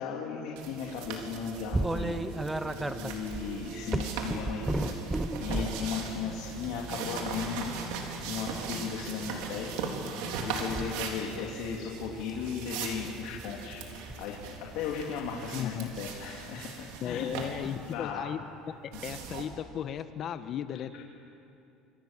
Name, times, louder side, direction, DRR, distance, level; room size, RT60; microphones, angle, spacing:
voice 1, 0.0-2.2 2.5-2.6 2.9-5.0 5.4-7.7 8.3-9.7 10.4-13.8 14.2-17.3 17.6-18.3 18.9-19.0 20.7-20.8, left 6 dB, 70° left, -2 dB, 2.9 m, -36 dB
sound 1, 0.6-17.9 18.9-19.5, right 5 dB, 80° right, 3.9 m, -40 dB
sound 2, 1.0-15.5, right 2 dB, 40° right, 5.0 m, -45 dB
sound 3, 1.7-5.9 6.6-6.8 8.6-9.0 10.7-10.9 11.4-11.8 12.2-12.5 13.9-14.2 15.9-16.1 17.6-17.7 19.2-19.3 20.0-20.1, right 2 dB, 10° right, 0.9 m, -33 dB
voice 2, 15.5-15.9 17.0-18.4 19.0-21.0, left 9 dB, 40° left, 10 dB, 1.3 m, -35 dB
28.5 x 25.0 x 7.5 m, 2.7 s
cardioid pair, 145°, 0 cm